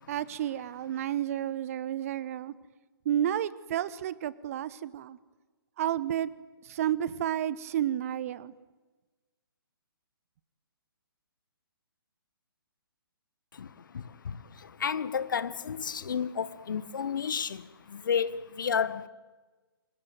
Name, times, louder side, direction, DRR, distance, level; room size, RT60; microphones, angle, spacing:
voice 1, 0.1-2.5 3.0-5.2 5.8-6.3 6.6-8.5, right 11 dB, 35° right, 1.1 m, -31 dB
voice 2, 13.9-14.4 14.8-17.6 17.9-19.1, left 7 dB, 55° left, 1.3 m, -31 dB
27.0 x 24.0 x 9.2 m
figure-of-eight pair, 130°, 13 cm